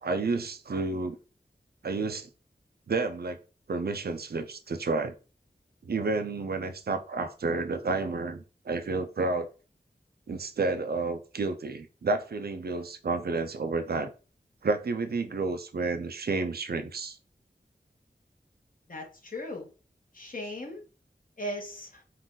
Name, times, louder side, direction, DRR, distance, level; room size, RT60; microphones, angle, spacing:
voice 1, 0.0-1.2 1.8-2.3 2.9-3.4 3.7-5.1 5.8-9.5 10.3-14.1 14.6-17.2, right 3 dB, 70° right, 0.5 m, -30 dB
voice 2, 18.9-19.7 20.1-20.8 21.4-22.0, left 1 dB, 55° left, 1.3 m, -37 dB
3.9 x 2.5 x 3.8 m
wide cardioid pair, 60°, 17 cm